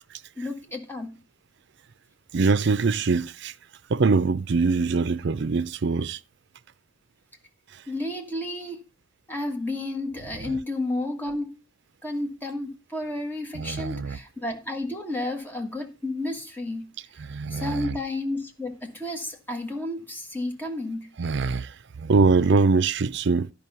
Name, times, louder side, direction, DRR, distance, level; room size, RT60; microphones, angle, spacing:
voice 1, 0.4-1.1 7.9-8.8 9.3-11.5 12.0-16.9 17.5-21.1, left 1 dB, 10° left, 1.6 m, -31 dB
voice 2, 2.3-3.5 3.9-6.2 10.4-10.6 13.5-14.2 17.2-18.0 21.2-23.5, right 4 dB, 60° right, 0.5 m, -23 dB
11.0 x 5.3 x 5.6 m
head